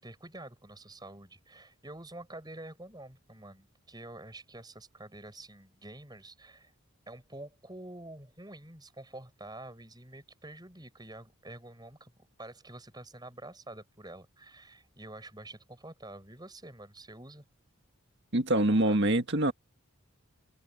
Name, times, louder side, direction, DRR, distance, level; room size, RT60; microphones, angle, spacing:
voice 1, 0.0-6.7 7.1-17.4 18.5-19.2, right 1 dB, 20° right, 5.9 m, -48 dB
voice 2, 18.3-19.5, right 1 dB, 50° right, 1.8 m, -25 dB
head